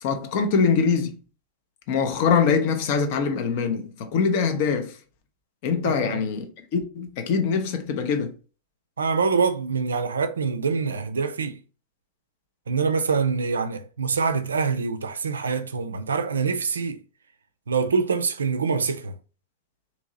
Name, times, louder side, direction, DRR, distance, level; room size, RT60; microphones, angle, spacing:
voice 1, 0.0-1.1 1.9-4.9 5.6-8.3, left 6 dB, 50° left, 0.5 m, -23 dB
voice 2, 5.8-6.3 9.0-11.6 12.7-17.0 17.7-19.2, right 5 dB, 70° right, 0.3 m, -25 dB
2.8 x 2.7 x 2.6 m
figure-of-eight pair, 90°, 0 cm